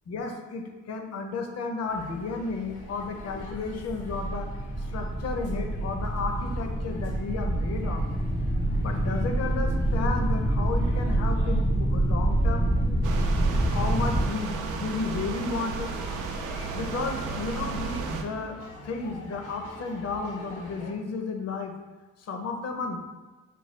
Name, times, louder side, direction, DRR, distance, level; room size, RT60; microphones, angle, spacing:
voice 1, 0.1-4.5 4.8-8.0 8.8-12.7 13.7-15.9 16.7-18.6 18.8-21.7 22.2-23.0, left 4 dB, 55° left, 4 dB, 0.7 m, -33 dB
sound 1, 1.9-20.9, left 2 dB, 85° left, 1.0 m, -47 dB
sound 2, 2.9-14.3, right 1 dB, ahead, 0.4 m, -26 dB
sound 3, 13.0-18.2, right 4 dB, 90° right, 0.5 m, -34 dB
5.2 x 2.3 x 3.1 m, 1.2 s
cardioid pair, 90°, 30 cm